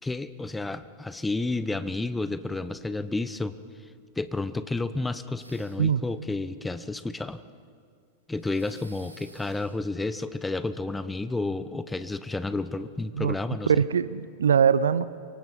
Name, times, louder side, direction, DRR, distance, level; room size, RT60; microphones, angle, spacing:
voice 1, 0.0-3.6 4.2-7.4 8.3-13.8, left 2 dB, 10° left, 14 dB, 0.9 m, -31 dB
sound 1, 5.4-6.0 8.4-9.7, right 1 dB, 85° right, 2.3 m, -52 dB
voice 2, 13.7-15.1, right 7 dB, 65° right, 17 dB, 0.7 m, -22 dB
28.5 x 24.5 x 5.6 m, 2.1 s
figure-of-eight pair, 90°, 0 cm